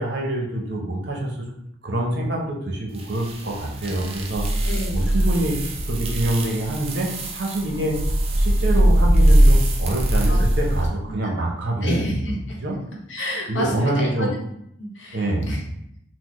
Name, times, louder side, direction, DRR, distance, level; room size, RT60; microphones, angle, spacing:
voice 1, 0.0-1.4 1.8-4.5 4.9-5.6 5.9-8.0 8.4-12.1 12.6-12.8 13.5-14.3 15.1-15.5, right 1 dB, 55° right, -1 dB, 0.7 m, -25 dB
sound 1, 3.0-10.9, right 1 dB, 30° right, 0.3 m, -20 dB
voice 2, 4.6-5.3 10.3-10.4 11.1-11.3 11.8-12.6 13.1-14.4 14.8-15.6, equal, 65° left, -1 dB, 0.8 m, -29 dB
4.1 x 2.0 x 3.0 m, 0.76 s
head